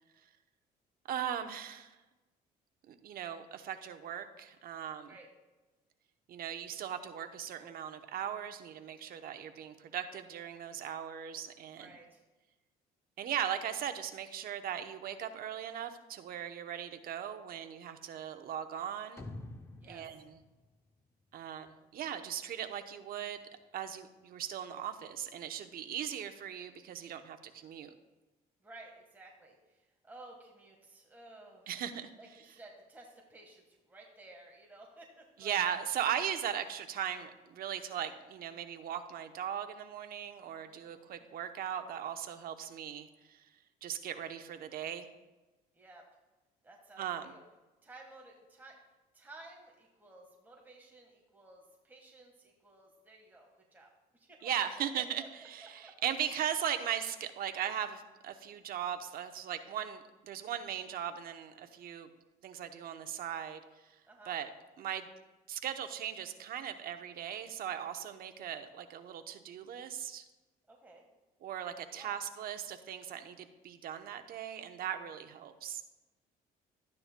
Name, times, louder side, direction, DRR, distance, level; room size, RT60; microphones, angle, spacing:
voice 1, 1.1-2.0 2.9-5.1 6.3-11.9 13.2-19.2 19.8-20.3 21.3-23.4 23.7-27.9 31.7-32.1 35.4-43.4 43.8-45.1 47.0-47.3 54.4-62.1 62.4-63.9 64.3-64.5 64.8-65.1 65.5-70.2 71.4-75.8, right 9 dB, 60° right, 8 dB, 0.8 m, -38 dB
voice 2, 11.7-12.2 19.8-20.0 28.6-31.7 32.2-35.6 40.6-41.3 45.7-46.0 46.6-47.4 47.8-48.8 49.1-54.7 55.0-55.3 55.6-55.9 64.1-64.4 70.7-71.0 71.9-72.2, right 2 dB, 10° right, -1 dB, 1.5 m, -55 dB
sound 1, 19.2-21.7, left 2 dB, 15° left, 0.6 m, -48 dB
13.0 x 9.7 x 2.2 m, 1.1 s
cardioid pair, 110°, 17 cm